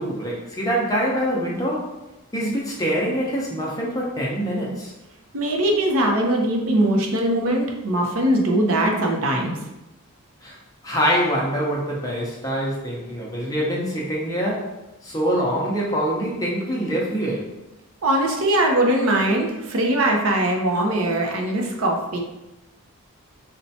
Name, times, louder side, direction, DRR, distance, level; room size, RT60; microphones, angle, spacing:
voice 1, 0.0-1.9 2.3-4.9 10.4-10.6 10.8-17.5, equal, 15° left, -4 dB, 0.5 m, -25 dB
voice 2, 5.3-9.7 18.0-22.2, right 1 dB, 70° right, 2 dB, 0.6 m, -21 dB
4.1 x 2.1 x 2.7 m, 0.98 s
head